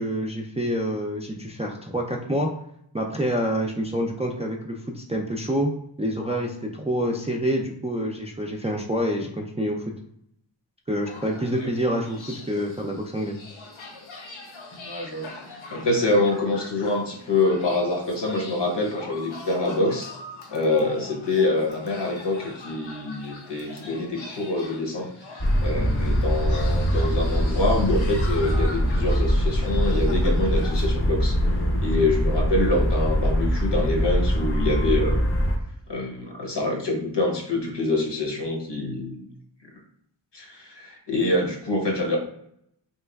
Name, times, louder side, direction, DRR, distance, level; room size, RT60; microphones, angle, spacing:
voice 1, 0.0-2.5 2.9-5.7 6.0-9.9 10.9-13.4, equal, 15° right, 0 dB, 0.3 m, -27 dB
sound 1, 11.0-30.9, left 2 dB, 90° left, 0.7 m, -42 dB
voice 2, 14.7-15.3 15.7-20.1 20.5-31.4 31.8-35.2 35.9-39.3 40.3-42.2, left 2 dB, 60° left, 0 dB, 0.9 m, -25 dB
sound 2, 25.4-35.6, equal, 30° left, 0.6 m, -23 dB
3.3 x 2.9 x 2.3 m, 0.72 s
wide cardioid pair, 60°, 46 cm